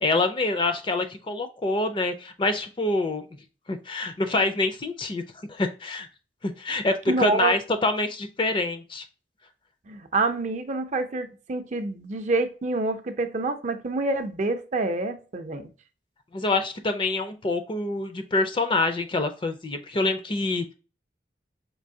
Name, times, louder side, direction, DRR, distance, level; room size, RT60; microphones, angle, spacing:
voice 1, 0.0-3.2 3.7-5.2 5.5-6.1 6.4-9.0 16.3-20.7, left 2 dB, 30° left, 0.5 m, -26 dB
voice 2, 7.1-7.5 9.9-15.7, right 3 dB, 45° right, 0.5 m, -27 dB
4.5 x 2.7 x 2.7 m
head